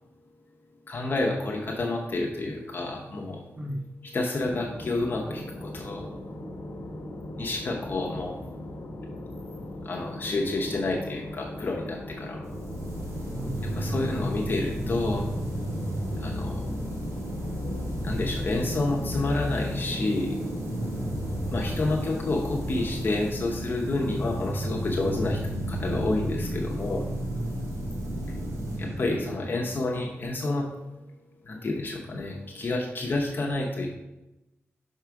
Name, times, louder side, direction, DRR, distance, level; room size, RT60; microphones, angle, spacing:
voice 1, 0.9-3.4 4.0-6.0 7.4-8.4 9.8-12.4 13.7-15.3 16.2-16.6 18.0-20.4 21.5-25.4 25.7-27.0 28.8-30.7 31.5-33.9, left 2 dB, 45° left, -1 dB, 0.8 m, -29 dB
sound 1, 4.4-23.3, left 1 dB, 70° left, 1.1 m, -39 dB
sound 2, 12.4-29.9, equal, 85° right, 1.6 m, -33 dB
voice 2, 13.3-14.0 20.7-21.3 27.3-27.7, right 1 dB, 30° right, 3 dB, 0.9 m, -35 dB
6.0 x 4.7 x 4.7 m, 0.98 s
wide cardioid pair, 140°, 5 cm